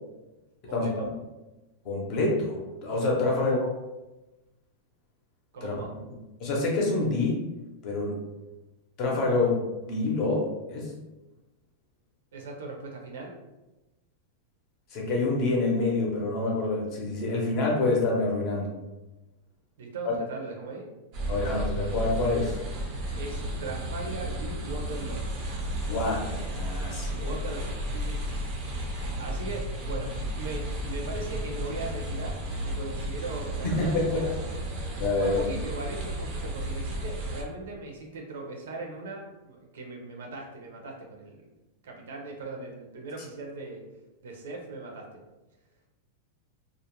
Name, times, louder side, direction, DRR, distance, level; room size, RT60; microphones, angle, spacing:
voice 1, 0.6-1.1 3.4-3.5 5.5-5.9 12.3-13.4 19.8-20.9 23.1-25.2 27.1-28.5 28.8-34.5 35.2-41.4 41.8-43.9 44.2-45.2, right 3 dB, 85° right, 0 dB, 0.6 m, -39 dB
voice 2, 1.8-3.7 5.6-5.7 6.4-7.4 7.8-8.2 9.0-10.4 10.7-10.9 14.9-18.7 20.0-20.1 21.3-22.6 25.9-27.3 33.6-34.2 35.0-35.4, left 2 dB, 30° left, -2 dB, 0.6 m, -27 dB
sound 1, 21.1-37.4, equal, 30° right, 0.4 m, -33 dB
2.4 x 2.0 x 2.9 m, 1.0 s
supercardioid pair, 175°, 0 cm